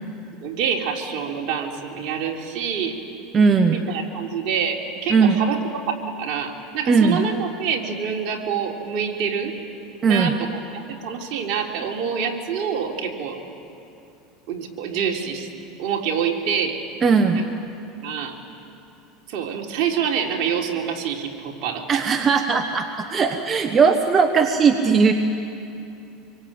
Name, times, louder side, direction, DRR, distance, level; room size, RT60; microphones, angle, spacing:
voice 1, 0.4-3.0 3.9-9.5 10.0-10.5 10.9-13.4 14.5-15.5 15.8-16.8 17.3-17.4 18.0-18.4 19.3-22.3, right 7 dB, 60° right, 1 dB, 3.6 m, -26 dB
voice 2, 3.3-3.8 5.1-5.4 6.9-7.2 10.0-10.3 17.0-17.4 21.9-25.1, right 5 dB, 30° right, 6 dB, 1.3 m, -18 dB
26.5 x 23.5 x 8.9 m, 2.8 s
supercardioid pair, 110°, 0 cm